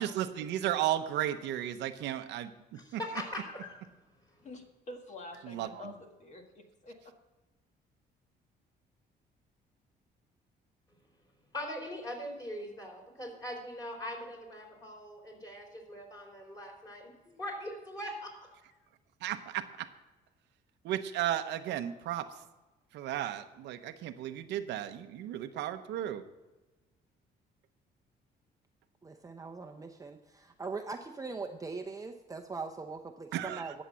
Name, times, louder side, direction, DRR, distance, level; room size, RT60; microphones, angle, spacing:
voice 1, 0.0-2.5 2.9-3.0 5.5-5.7 19.2-19.9 20.8-22.3 22.9-26.2 33.3-33.6, right 12 dB, 85° right, 9 dB, 0.8 m, -34 dB
voice 2, 2.7-3.8 11.5-17.1 17.4-18.5, left 1 dB, 20° left, 0 dB, 4.1 m, -41 dB
voice 3, 4.4-7.1, left 2 dB, 45° left, 4 dB, 1.7 m, -48 dB
voice 4, 29.0-33.8, right 4 dB, 20° right, 3 dB, 0.7 m, -41 dB
11.5 x 7.3 x 7.5 m, 1.1 s
cardioid pair, 105°, 17 cm